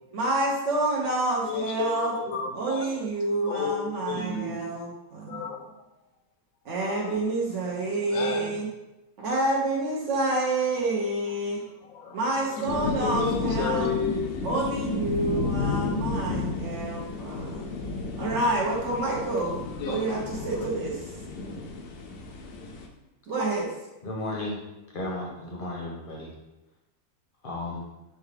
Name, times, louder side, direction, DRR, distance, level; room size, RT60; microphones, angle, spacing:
voice 1, 0.1-2.1 2.5-5.5 6.6-8.7 9.2-11.6 12.1-13.9 14.4-17.7 18.2-21.1 23.3-23.7, right 2 dB, 60° right, -3 dB, 0.9 m, -28 dB
voice 2, 1.4-3.0 3.5-4.7 5.3-5.9 6.8-7.5 8.1-8.6 11.8-14.6 19.1-19.2 19.6-20.7, left 5 dB, 70° left, 3 dB, 1.0 m, -33 dB
sound 1, 12.7-22.9, left 3 dB, 90° left, 1.2 m, -32 dB
voice 3, 24.0-24.6 24.9-26.3 27.4-27.8, left 2 dB, 45° left, -2 dB, 0.7 m, -34 dB
5.5 x 2.3 x 3.2 m, 0.99 s
omnidirectional pair, 1.6 m